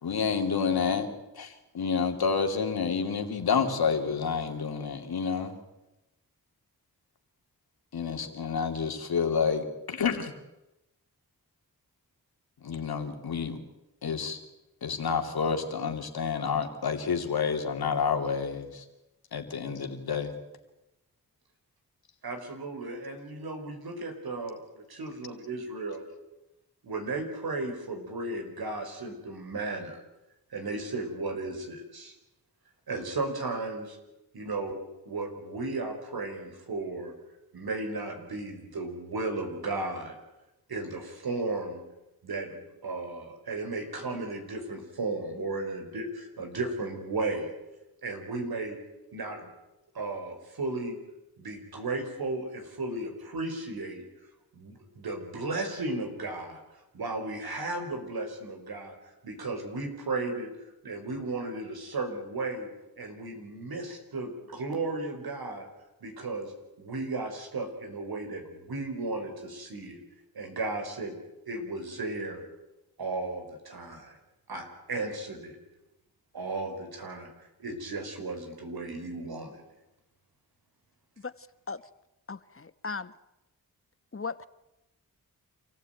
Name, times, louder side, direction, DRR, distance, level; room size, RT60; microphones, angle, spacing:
voice 1, 0.0-1.1 1.3-5.5 7.9-10.3 12.6-13.6 14.0-14.4 14.8-18.8 19.3-20.3, left 6 dB, 85° left, 5 dB, 2.8 m, -29 dB
voice 2, 22.2-26.0 26.8-30.0 30.5-32.1 32.9-34.0 34.3-34.8 35.1-37.1 37.5-40.2 40.7-41.8 42.2-47.5 48.0-48.8 49.1-49.5 49.9-51.0 51.4-54.0 54.5-56.6 56.9-59.0 59.2-60.5 60.8-62.7 63.0-65.7 66.0-66.5 66.8-70.0 70.4-71.1 71.5-72.4 73.0-74.2 74.5-75.6 76.3-77.3 77.6-79.6, right 2 dB, 85° right, 4 dB, 5.2 m, -35 dB
voice 3, 81.2-81.8 82.3-83.1 84.1-84.5, left 4 dB, 35° left, 14 dB, 1.3 m, -38 dB
27.5 x 15.5 x 9.2 m, 0.97 s
cardioid pair, 45°, 36 cm